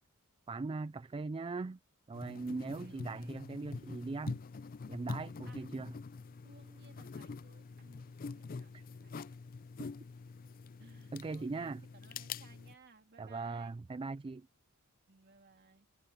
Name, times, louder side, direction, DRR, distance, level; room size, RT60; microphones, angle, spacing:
voice 1, 0.5-1.8 2.1-4.4 4.9-5.9 8.7-8.8 11.1-11.8 13.2-14.5, right 3 dB, 25° right, 0.3 m, -40 dB
sound 1, 2.1-12.7, left 4 dB, 40° left, 0.4 m, -45 dB
voice 2, 2.5-3.4 5.5-5.6 6.4-9.4 10.8-13.8 15.1-15.9, right 3 dB, 50° right, 2.4 m, -62 dB
head